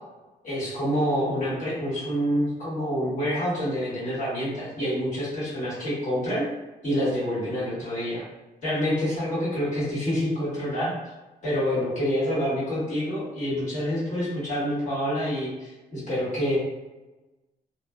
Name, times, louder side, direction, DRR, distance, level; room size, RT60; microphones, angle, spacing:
voice 1, 0.4-6.4 6.8-8.2 8.6-10.9 11.4-16.6, equal, 50° left, -10 dB, 1.5 m, -27 dB
2.5 x 2.4 x 2.3 m, 1.1 s
cardioid pair, 130°, 16 cm